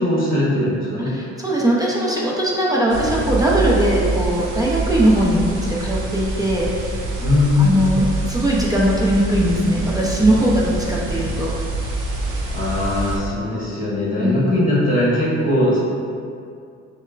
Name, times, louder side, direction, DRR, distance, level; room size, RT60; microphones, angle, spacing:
voice 1, 0.0-1.1 7.2-7.9 12.5-15.8, left 1 dB, 30° left, -7 dB, 1.5 m, -20 dB
voice 2, 1.1-7.0 7.6-11.5 14.2-14.6, right 1 dB, 10° right, -5 dB, 0.7 m, -20 dB
sound 1, 2.9-13.2, right 2 dB, 85° right, 0.7 m, -26 dB
6.3 x 2.2 x 2.5 m, 2.4 s
cardioid pair, 90°, 30 cm